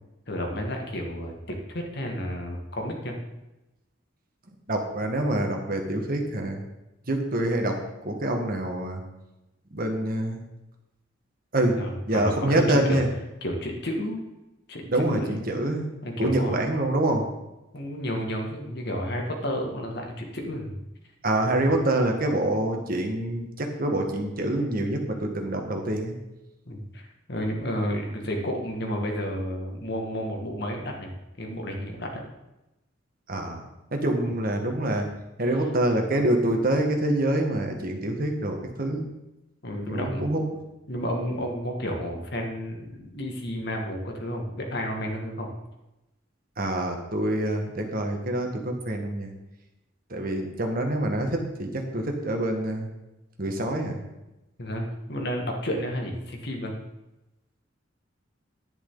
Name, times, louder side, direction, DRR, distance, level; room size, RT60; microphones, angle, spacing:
voice 1, 0.3-3.2 11.8-13.0 13.4-14.2 14.7-15.5 16.0-16.6 17.7-20.8 21.5-21.7 26.7-27.0 27.3-31.1 31.4-32.2 34.2-34.4 39.6-40.3 40.9-45.5 54.6-56.7, equal, 60° left, 1 dB, 2.1 m, -31 dB
voice 2, 4.7-6.6 7.1-7.8 8.1-9.0 9.7-10.4 11.5-11.8 12.1-13.1 14.9-15.9 16.2-17.3 21.2-26.1 33.3-35.1 35.4-39.1 39.9-40.4 46.6-49.3 50.1-52.9 53.4-54.0, right 1 dB, 50° right, 3 dB, 1.7 m, -26 dB
10.5 x 10.0 x 4.0 m, 0.96 s
head